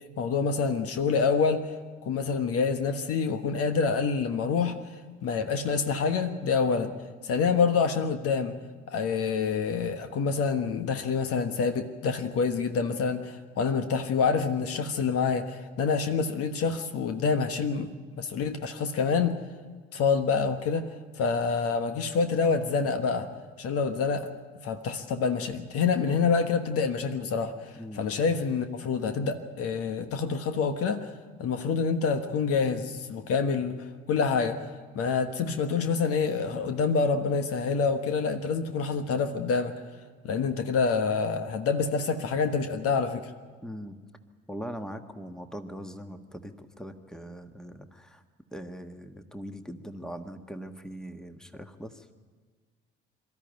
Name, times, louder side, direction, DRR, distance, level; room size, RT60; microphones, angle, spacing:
voice 1, 0.2-1.7 2.0-4.8 5.2-6.9 7.2-8.6 8.9-17.9 18.2-19.4 19.9-20.9 21.2-23.3 23.6-24.3 24.6-27.5 28.0-31.1 31.4-34.7 34.9-39.7 40.2-43.3, left 5 dB, 50° left, 8 dB, 1.3 m, -27 dB
voice 2, 43.6-44.0 44.5-48.2 48.5-52.1, equal, ahead, 8 dB, 1.5 m, -41 dB
24.0 x 13.5 x 9.2 m, 1.5 s
figure-of-eight pair, 50°, 29 cm